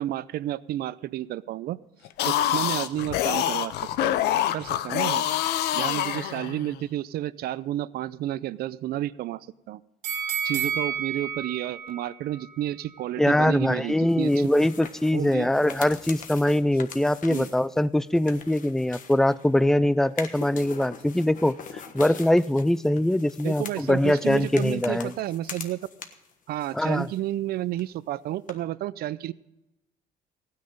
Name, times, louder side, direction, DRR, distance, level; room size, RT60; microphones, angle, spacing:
voice 1, 0.0-1.8 2.2-4.2 4.5-5.2 5.7-9.8 10.4-14.5 15.1-15.5 17.3-17.5 23.4-25.9 26.5-29.3, right 13 dB, 65° right, 19 dB, 0.5 m, -31 dB
sound 1, 2.0-6.8, left 12 dB, 75° left, 0.7 m, -26 dB
sound 2, 10.0-13.1 13.5-13.6, right 7 dB, 85° right, 2.9 m, -31 dB
voice 2, 13.2-21.6 21.9-25.1 26.7-27.1, left 1 dB, 5° left, 18 dB, 0.3 m, -22 dB
sound 3, 14.1-19.6 20.0-26.3 26.6-27.5 27.7-27.8 28.5-28.6, left 6 dB, 50° left, 1.3 m, -42 dB
15.5 x 9.5 x 5.1 m, 0.94 s
cardioid pair, 110°, 17 cm